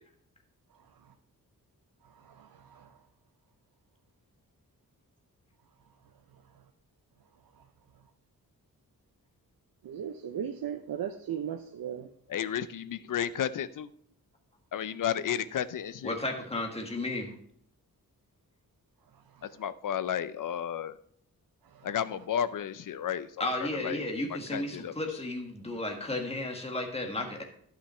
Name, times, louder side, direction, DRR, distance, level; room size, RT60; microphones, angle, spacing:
voice 1, 2.0-3.1 6.0-6.7 7.5-7.7 7.9-8.1 9.8-12.1 19.1-19.6 21.6-21.9, right 8 dB, 80° right, 6 dB, 0.7 m, -39 dB
voice 2, 12.3-13.9 14.7-16.2 19.4-21.0 21.8-24.0 24.3-24.9, left 9 dB, 65° left, 15 dB, 0.6 m, -33 dB
voice 3, 16.0-17.3 23.4-27.4, left 2 dB, 15° left, 2 dB, 1.6 m, -33 dB
11.5 x 5.9 x 4.4 m, 0.65 s
wide cardioid pair, 125°, 35 cm